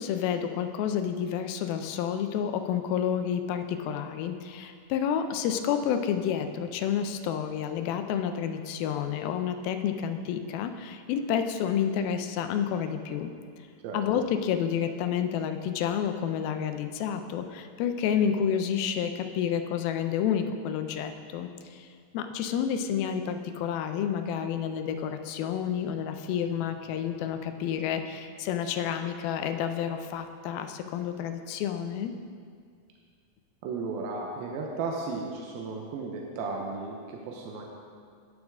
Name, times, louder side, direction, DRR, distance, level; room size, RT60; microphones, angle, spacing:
voice 1, 0.0-13.3 13.9-21.9 22.1-32.1, left 8 dB, 85° left, 7 dB, 2.5 m, -30 dB
voice 2, 33.6-37.6, right 4 dB, 85° right, -1 dB, 2.7 m, -34 dB
17.0 x 6.5 x 3.6 m, 2.1 s
omnidirectional pair, 4.2 m